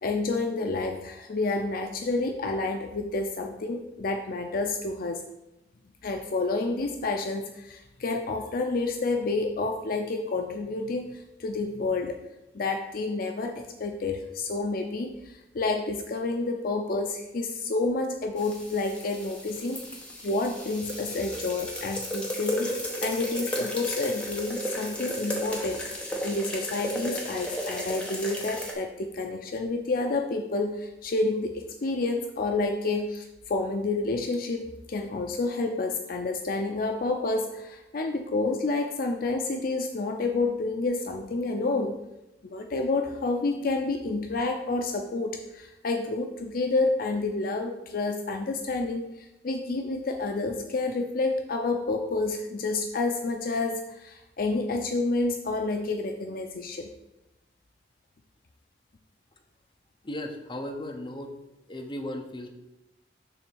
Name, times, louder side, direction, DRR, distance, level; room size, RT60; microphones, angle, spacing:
voice 1, 0.0-5.2 6.0-12.2 12.5-19.8 20.2-41.9 42.4-56.9, left 3 dB, 55° left, 4 dB, 0.5 m, -29 dB
sound 1, 18.4-28.7, equal, 5° left, 1.2 m, -34 dB
voice 2, 60.0-61.3 61.7-62.5, left 1 dB, 30° left, 3 dB, 0.8 m, -36 dB
6.9 x 3.4 x 6.2 m, 0.96 s
head